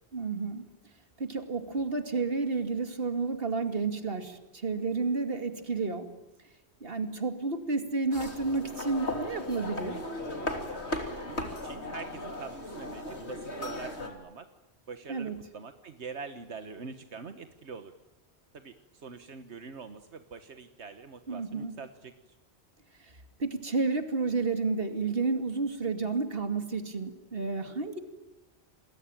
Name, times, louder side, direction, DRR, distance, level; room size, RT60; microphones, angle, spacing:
voice 1, 0.1-0.6 1.2-6.1 6.8-10.0 15.1-15.4 21.3-21.7 23.0-23.1 23.4-28.0, right 4 dB, 60° right, 7 dB, 2.7 m, -31 dB
sound 1, 8.1-14.1, left 1 dB, 80° left, 3.7 m, -37 dB
voice 2, 11.3-14.5 14.9-17.9 18.5-22.4, right 5 dB, 85° right, 9 dB, 1.6 m, -44 dB
28.5 x 21.5 x 9.0 m, 1.0 s
omnidirectional pair, 1.1 m